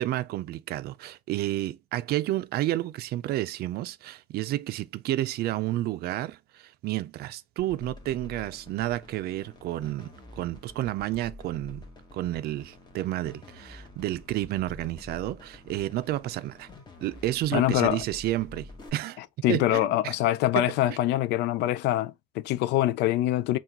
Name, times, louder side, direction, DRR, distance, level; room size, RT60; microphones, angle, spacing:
voice 1, 0.0-11.8 12.1-16.7 17.0-19.2 19.5-20.1 20.5-21.0, right 15 dB, 70° right, 0.4 m, -31 dB
sound 1, 7.6-18.9, left 2 dB, 25° left, 1.2 m, -48 dB
voice 2, 17.5-18.0 19.4-23.6, left 14 dB, 85° left, 0.4 m, -24 dB
5.7 x 2.3 x 2.9 m
cardioid pair, 110°, 17 cm